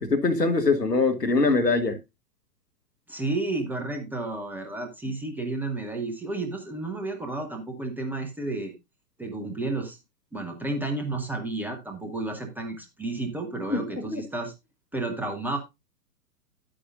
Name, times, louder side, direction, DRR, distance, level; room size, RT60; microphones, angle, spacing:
voice 1, 0.0-2.0 13.7-14.3, left 3 dB, 85° left, 1.4 m, -23 dB
voice 2, 3.1-8.7 9.2-10.0 10.3-14.5 14.9-15.6, right 2 dB, 5° right, 0.7 m, -31 dB
9.9 x 8.7 x 2.5 m
figure-of-eight pair, 110°, 47 cm